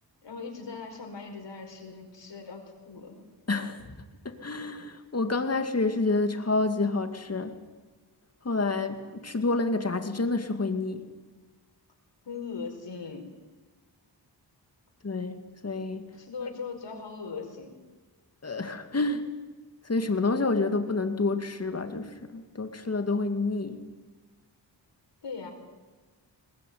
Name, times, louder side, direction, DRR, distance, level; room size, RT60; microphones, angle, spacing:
voice 1, 0.2-3.2 12.2-13.3 16.1-17.7 25.2-25.5, left 5 dB, 80° left, 3 dB, 5.1 m, -39 dB
voice 2, 3.5-3.9 4.2-7.6 8.4-11.0 15.0-16.1 18.4-19.3 19.8-23.8, left 3 dB, 35° left, 7 dB, 2.3 m, -28 dB
21.0 x 20.5 x 9.4 m, 1.3 s
wide cardioid pair, 100°, 42 cm